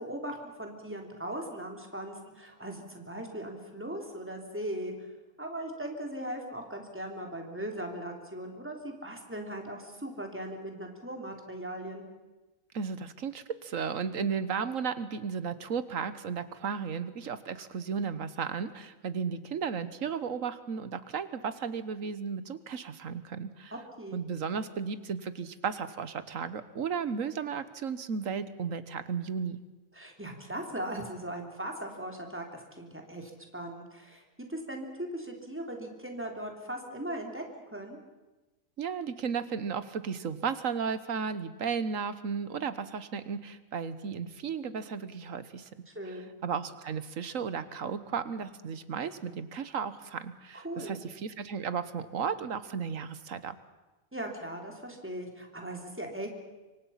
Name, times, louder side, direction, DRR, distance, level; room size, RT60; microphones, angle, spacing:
voice 1, 0.0-5.1 5.4-12.1 24.0-24.2 29.9-38.0 45.9-46.3 50.5-51.0 54.1-56.3, right 1 dB, 10° right, 2 dB, 3.3 m, -39 dB
voice 2, 12.7-23.7 24.1-29.6 38.8-45.7 46.4-53.5, right 6 dB, 80° right, 13 dB, 1.5 m, -34 dB
26.5 x 24.0 x 5.8 m, 1.1 s
omnidirectional pair, 1.4 m